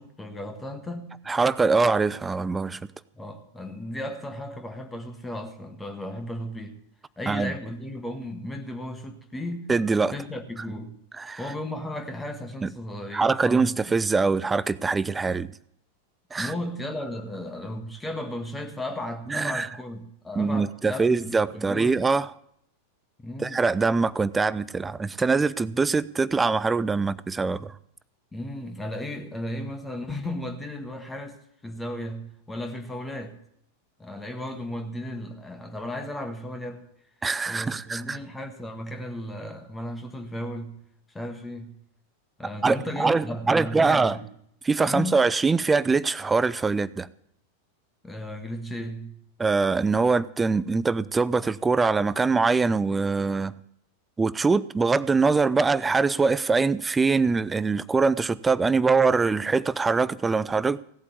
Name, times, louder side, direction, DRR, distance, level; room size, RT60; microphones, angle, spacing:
voice 1, 0.0-1.1 3.1-6.8 7.2-9.7 10.1-11.0 11.4-13.9 16.3-22.0 23.2-23.6 28.3-31.4 31.6-33.4 34.0-36.8 37.5-40.8 41.1-41.8 42.4-44.3 44.8-45.2 48.0-49.2, left 1 dB, 10° left, 1.5 m, -35 dB
voice 2, 1.3-2.8 7.3-7.5 9.7-10.1 11.2-11.4 12.6-12.7 13.1-15.5 16.3-16.5 19.3-19.7 20.4-22.3 23.4-27.7 37.2-38.2 42.6-44.2 44.6-47.1 49.4-53.5 54.2-60.8, right 4 dB, 15° right, 0.5 m, -23 dB
17.0 x 8.4 x 7.1 m
figure-of-eight pair, 90°, 0 cm